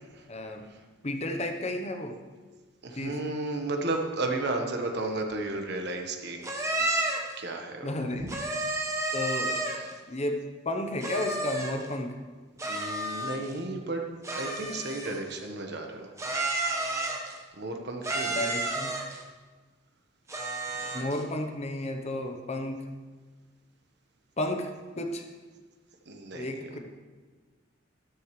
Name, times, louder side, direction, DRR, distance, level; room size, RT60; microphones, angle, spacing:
voice 1, 0.3-0.7 1.0-2.2 2.9-3.2 7.8-8.2 9.1-9.6 10.1-12.2 18.3-18.9 20.9-22.9 24.4-24.7 25.0-25.2 26.3-26.8, left 1 dB, 35° left, 5 dB, 0.9 m, -32 dB
voice 2, 2.8-7.0 7.4-8.4 9.6-10.0 12.7-14.0 14.3-16.1 17.5-18.4 20.8-21.0 26.1-26.8, right 2 dB, 55° right, 3 dB, 1.3 m, -34 dB
sound 1, 6.4-7.3 8.3-9.9 11.0-11.9 12.6-13.6 14.2-15.4 16.2-17.4 18.0-19.2 20.3-21.2, right 2 dB, 15° right, 1.2 m, -31 dB
13.0 x 12.5 x 3.3 m, 1.4 s
head